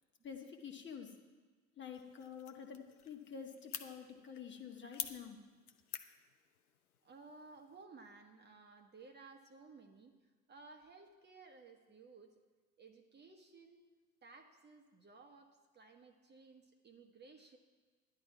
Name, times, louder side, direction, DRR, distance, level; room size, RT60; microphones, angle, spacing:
voice 1, 0.2-1.1 1.8-5.4, left 7 dB, 25° left, 2 dB, 1.4 m, -48 dB
sound 1, 1.9-7.8, left 8 dB, 75° left, 0.9 m, -50 dB
voice 2, 7.0-10.1 10.5-12.3 12.8-13.9 14.2-17.6, right 4 dB, 25° right, 4 dB, 1.3 m, -58 dB
11.5 x 11.0 x 4.6 m, 1.4 s
figure-of-eight pair, 75°, 44 cm